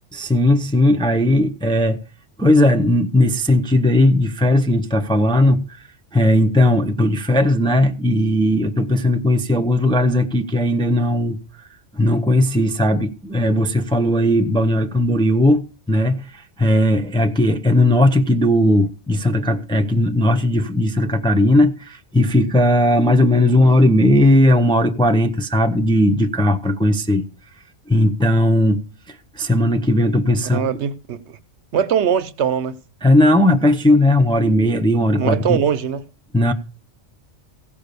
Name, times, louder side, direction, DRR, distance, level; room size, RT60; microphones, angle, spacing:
voice 1, 0.1-2.0 2.4-5.8 6.1-11.7 11.9-27.3 27.9-30.7 33.0-35.6 36.3-36.5, left 1 dB, 5° left, 0.5 m, -17 dB
voice 2, 30.5-31.4 31.7-32.8 35.2-36.0, right 8 dB, 70° right, 1.0 m, -21 dB
15.5 x 5.3 x 6.7 m
omnidirectional pair, 1.3 m